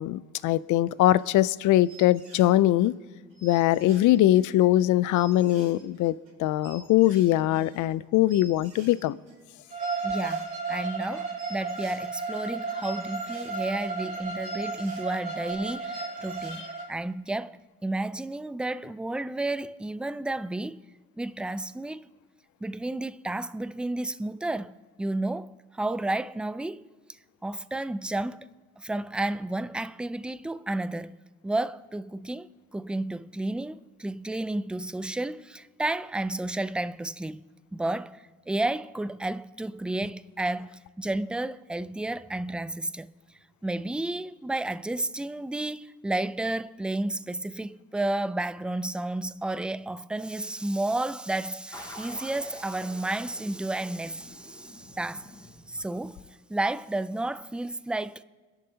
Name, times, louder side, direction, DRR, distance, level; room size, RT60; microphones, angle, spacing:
voice 1, 0.0-2.9 3.4-9.1, left 14 dB, 75° left, 0.5 m, -22 dB
sound 1, 0.9-1.5 1.8-2.9 3.3-15.0 15.5-15.6 15.9-16.8, right 3 dB, 85° right, 5.2 m, -51 dB
Bowed string instrument, 9.7-16.9, right 4 dB, 30° right, 3.2 m, -34 dB
voice 2, 10.0-20.8 21.2-22.1 22.6-26.9 27.4-28.5 28.8-31.2 31.4-37.4 37.7-43.1 43.6-56.2 56.5-58.2, right 2 dB, 5° right, 0.3 m, -32 dB
sound 2, 51.7-56.2, left 1 dB, 15° left, 2.4 m, -47 dB
30.0 x 11.0 x 2.8 m
cardioid pair, 90°, 30 cm